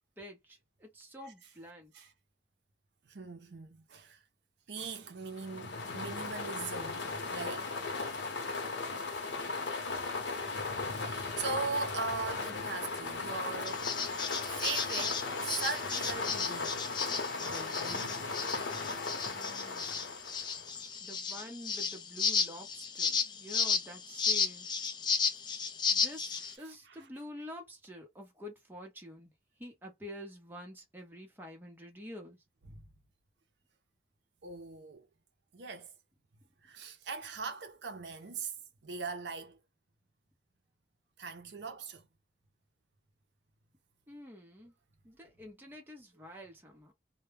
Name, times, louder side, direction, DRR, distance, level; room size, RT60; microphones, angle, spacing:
voice 1, 0.2-1.9 9.0-9.8 19.2-20.1 21.0-24.8 25.9-29.3 29.6-32.4 44.1-44.7 45.0-46.9, left 1 dB, 10° right, 0.7 m, -48 dB
voice 2, 3.1-4.2 4.7-7.7 8.3-8.5 11.0-16.9 17.4-18.2 18.6-19.1 26.7-27.1 32.7-32.9 34.4-35.1 35.5-35.9 36.6-38.5 38.8-39.6 41.2-42.1, right 4 dB, 75° right, 0.5 m, -40 dB
sound 1, 5.3-20.8, left 3 dB, 90° left, 0.7 m, -37 dB
sound 2, 13.7-26.5, left 5 dB, 25° left, 0.4 m, -34 dB
2.1 x 2.1 x 3.1 m
head